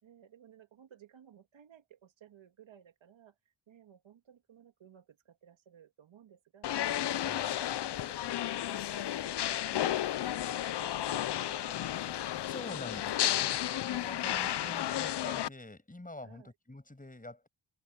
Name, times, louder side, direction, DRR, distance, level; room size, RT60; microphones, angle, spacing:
voice 1, 0.0-3.4 3.7-6.7 7.0-7.7 8.0-12.3 12.7-13.7 14.0-14.5 16.2-16.5, right 9 dB, 75° right, 3.0 m, -58 dB
sound 1, 6.6-15.5, left 12 dB, 60° left, 0.8 m, -33 dB
voice 2, 12.5-13.6 13.8-17.5, left 2 dB, 15° left, 7.5 m, -46 dB
supercardioid pair, 50°, 46 cm